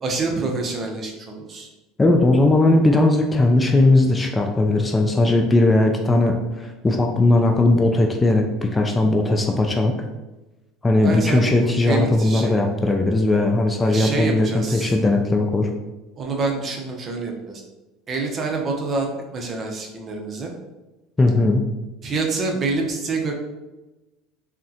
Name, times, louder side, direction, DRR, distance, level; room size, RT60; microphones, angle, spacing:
voice 1, 0.0-1.7 11.0-12.5 13.8-15.0 16.2-17.6 18.1-19.1 19.3-20.5 22.0-23.3, right 3 dB, 40° right, 2 dB, 0.6 m, -27 dB
voice 2, 2.0-9.9 10.8-15.7 21.2-21.6, left 2 dB, 20° left, 3 dB, 0.3 m, -18 dB
3.4 x 2.1 x 2.7 m, 1.1 s
supercardioid pair, 90°, 0 cm